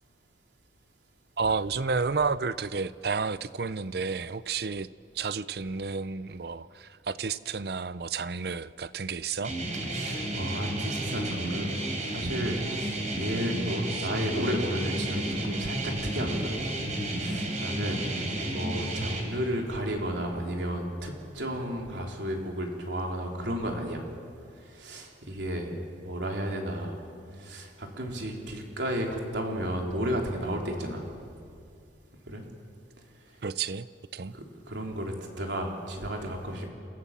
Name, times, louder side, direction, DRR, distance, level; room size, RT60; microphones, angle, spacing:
voice 1, 1.4-4.9 5.1-9.5 14.0-14.1 33.4-33.9 34.1-34.3, right 5 dB, 60° right, 0.6 m, -31 dB
sound 1, 9.4-19.2, right 1 dB, 40° right, 3.8 m, -32 dB
voice 2, 9.9-11.7 12.0-16.6 17.0-18.1 18.4-24.0 24.6-25.7 26.0-27.0 27.3-31.1 32.3-32.4 34.3-36.7, equal, 80° right, 3.4 m, -33 dB
28.5 x 16.0 x 7.4 m
head